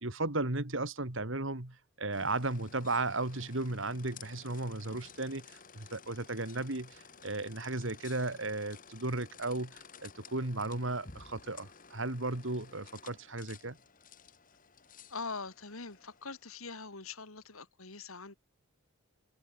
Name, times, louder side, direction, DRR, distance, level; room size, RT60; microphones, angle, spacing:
voice 1, 0.0-13.8, right 2 dB, 60° right, 2.4 m, -35 dB
sound 1, 2.1-16.5, left 6 dB, 40° left, 2.4 m, -54 dB
voice 2, 15.1-18.3, left 4 dB, 80° left, 3.5 m, -43 dB
head